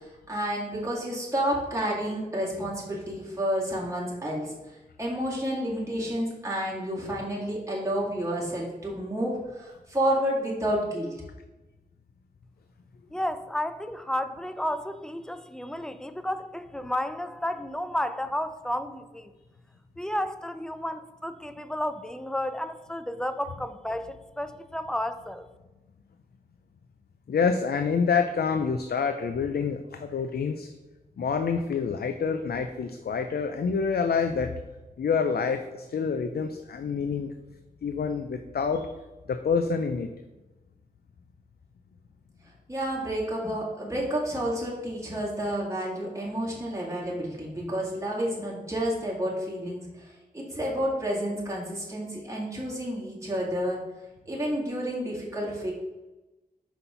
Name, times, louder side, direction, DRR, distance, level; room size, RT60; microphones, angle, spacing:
voice 1, 0.0-11.1 42.7-53.8 54.3-55.7, equal, 20° right, -5 dB, 2.1 m, -30 dB
voice 2, 13.1-19.3 20.0-25.5, left 1 dB, 5° left, 10 dB, 0.5 m, -32 dB
voice 3, 27.3-30.7 31.2-34.5 35.0-37.3 37.8-38.9 39.3-40.1, left 5 dB, 75° left, 7 dB, 0.5 m, -27 dB
5.6 x 4.1 x 5.6 m, 1.1 s
wide cardioid pair, 65°, 16 cm